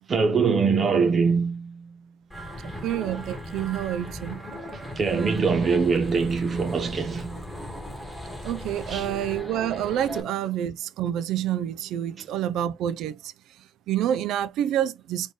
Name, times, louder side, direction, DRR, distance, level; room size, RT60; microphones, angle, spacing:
voice 1, 0.1-2.0 4.7-7.5 8.9-9.2 10.1-10.2 12.2-12.3, right 5 dB, 35° right, 0.8 m, -24 dB
sound 1, 2.3-10.2, left 1 dB, ahead, 1.7 m, -38 dB
voice 2, 2.6-4.4 8.4-13.2 13.9-15.3, right 11 dB, 85° right, 0.4 m, -28 dB
4.2 x 3.4 x 3.1 m
cardioid pair, 145°, 0 cm